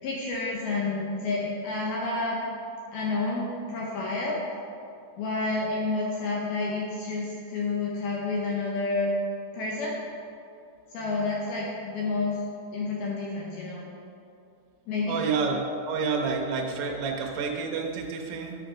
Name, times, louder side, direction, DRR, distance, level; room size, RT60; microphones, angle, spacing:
voice 1, 0.0-2.4 2.9-4.4 5.2-9.1 9.5-10.0 10.9-12.4 12.7-13.9 14.9-15.2, left 3 dB, 75° left, -4 dB, 2.4 m, -29 dB
voice 2, 15.1-18.6, right 4 dB, 75° right, 2 dB, 2.6 m, -29 dB
10.0 x 5.2 x 4.9 m, 2.5 s
omnidirectional pair, 5.3 m